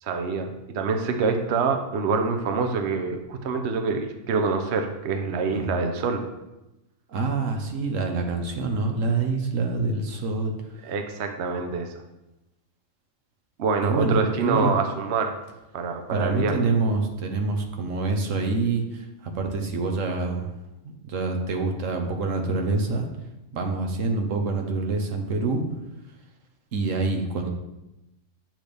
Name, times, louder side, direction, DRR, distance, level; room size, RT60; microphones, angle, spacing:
voice 1, 0.0-6.2 10.8-11.9 13.6-15.4 15.7-16.5, right 4 dB, 60° right, 6 dB, 0.9 m, -26 dB
voice 2, 5.4-5.7 7.1-10.5 13.8-14.7 16.1-20.5 20.8-23.1 23.5-25.6 26.7-27.5, right 3 dB, 80° right, 3 dB, 1.3 m, -26 dB
8.1 x 6.3 x 3.4 m, 0.97 s
omnidirectional pair, 1.3 m